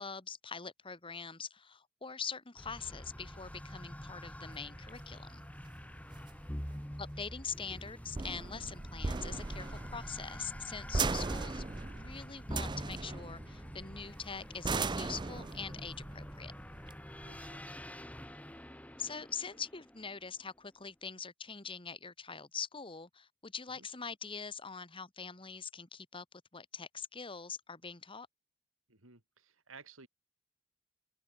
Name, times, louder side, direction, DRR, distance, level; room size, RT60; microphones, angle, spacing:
voice 1, 0.0-5.4 7.0-11.6 11.9-16.5 19.0-26.2 26.5-28.3, left 6 dB, 25° left, 1.6 m, -43 dB
sound 1, 2.6-20.5, equal, 5° left, 1.7 m, -47 dB
sound 2, 4.5-17.6, right 3 dB, 20° right, 0.5 m, -39 dB
voice 2, 17.2-17.8 23.8-23.9 28.9-30.1, right 5 dB, 70° right, 3.6 m, -56 dB
head